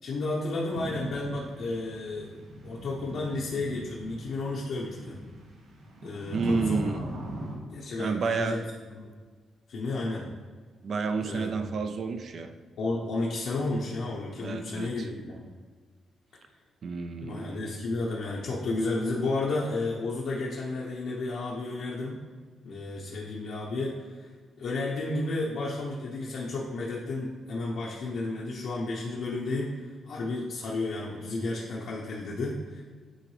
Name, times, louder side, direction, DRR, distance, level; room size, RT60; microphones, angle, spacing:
voice 1, 0.0-2.4 2.6-5.2 6.0-7.0 7.7-8.6 8.9-9.1 9.7-10.3 11.2-11.5 12.8-15.5 17.2-22.2 22.6-24.3 24.6-32.8, left 2 dB, 65° left, -5 dB, 0.9 m, -32 dB
sound 1, 0.7-7.6, right 1 dB, 80° right, 1.5 m, -39 dB
voice 2, 6.3-7.0 8.0-8.7 10.8-12.5 14.4-15.1 16.8-17.6, right 4 dB, 45° right, 8 dB, 0.4 m, -30 dB
9.1 x 3.8 x 3.2 m, 1.5 s
wide cardioid pair, 175°, 0 cm